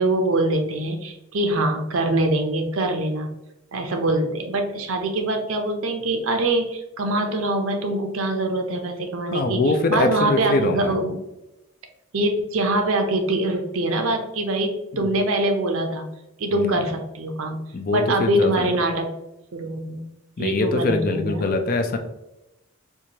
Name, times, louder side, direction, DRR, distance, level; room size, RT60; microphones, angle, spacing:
voice 1, 0.0-3.3 3.7-11.2 12.1-16.1 16.4-17.6 17.9-19.1 19.5-20.1 20.4-21.5, right 1 dB, 70° right, 4 dB, 0.6 m, -24 dB
voice 2, 9.3-10.9 14.9-15.1 16.5-16.8 17.7-18.7 20.4-22.0, left 2 dB, 40° left, 6 dB, 0.4 m, -23 dB
4.5 x 2.5 x 2.8 m, 0.92 s
head